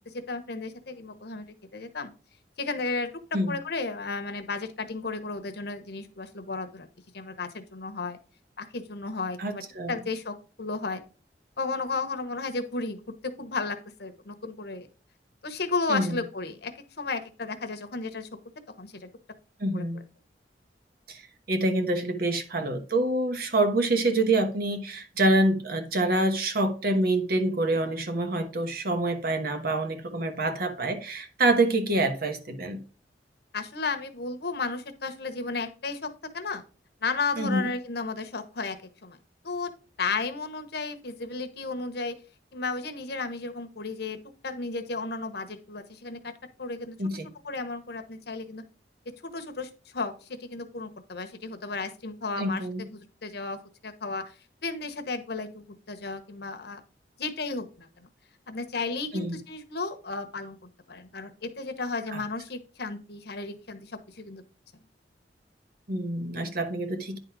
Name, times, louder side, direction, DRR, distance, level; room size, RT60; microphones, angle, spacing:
voice 1, 0.1-1.4 1.7-2.1 2.6-3.1 3.5-6.9 7.1-8.2 8.6-9.6 9.9-11.0 11.6-14.9 15.4-18.3 18.8-19.1 19.7-20.0 33.5-36.6 37.0-39.2 39.4-39.7 40.0-42.2 42.5-44.2 44.4-46.2 46.6-47.0 47.4-48.6 49.2-54.3 54.6-56.8 57.2-58.1 58.5-60.6 60.9-64.4, left 3 dB, 65° left, 1.1 m, -33 dB
voice 2, 9.4-10.0 15.9-16.2 19.6-20.0 21.1-21.2 21.5-32.8 37.4-37.7 47.0-47.3 52.4-52.8 59.1-59.4 62.1-62.2 65.9-67.2, right 2 dB, 60° right, 1.2 m, -26 dB
9.7 x 3.9 x 4.7 m
head